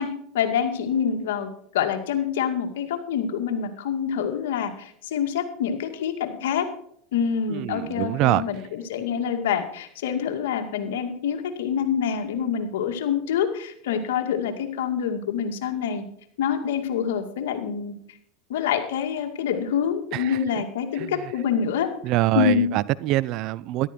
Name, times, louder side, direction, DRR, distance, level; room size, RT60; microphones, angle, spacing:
voice 1, 0.0-1.5 1.7-6.7 7.1-16.0 16.4-17.9 18.5-21.9 22.3-22.8, left 8 dB, 75° left, 6 dB, 2.2 m, -26 dB
voice 2, 7.5-8.4 20.1-20.4 21.0-21.1 22.0-23.9, right 16 dB, 55° right, 20 dB, 0.6 m, -24 dB
14.0 x 12.0 x 4.5 m, 0.65 s
hypercardioid pair, 95°, 0 cm